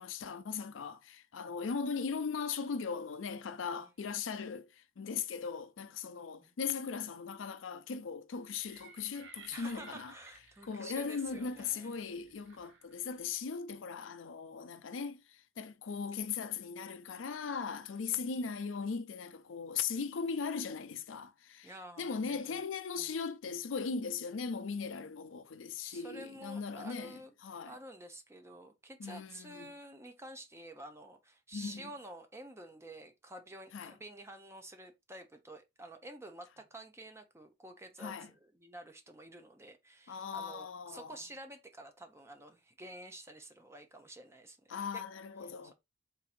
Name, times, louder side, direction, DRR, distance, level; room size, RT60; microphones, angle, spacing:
voice 1, 0.0-10.1 10.6-21.7 22.0-27.7 29.0-29.7 31.5-31.9 33.7-33.9 38.0-38.3 40.1-41.1 44.7-45.7, left 5 dB, 85° left, 0.5 m, -39 dB
voice 2, 6.2-6.6 9.5-12.1 18.0-18.3 21.6-22.6 23.0-23.1 25.8-27.3 27.6-45.0, right 1 dB, 15° right, 0.7 m, -50 dB
sound 1, 8.5-13.3, right 5 dB, 80° right, 0.9 m, -58 dB
3.6 x 2.7 x 4.2 m
head